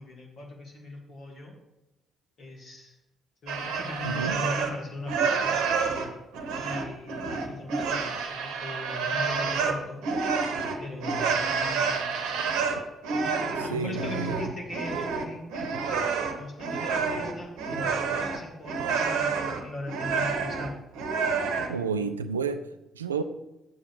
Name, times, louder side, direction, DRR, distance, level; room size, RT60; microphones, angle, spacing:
voice 1, 0.0-1.5 2.4-2.9 3.4-5.7 6.6-10.0 10.8-12.2 13.1-15.7 16.2-20.8, left 2 dB, 50° left, 2.8 m, -39 dB
sound 1, 3.5-4.8 5.1-21.8, right 5 dB, 65° right, 0.9 m, -29 dB
voice 2, 4.0-4.4 13.7-14.4 21.7-22.6 23.0-23.2, right 5 dB, 80° right, 0.4 m, -30 dB
9.3 x 7.5 x 4.7 m
figure-of-eight pair, 40°, 0 cm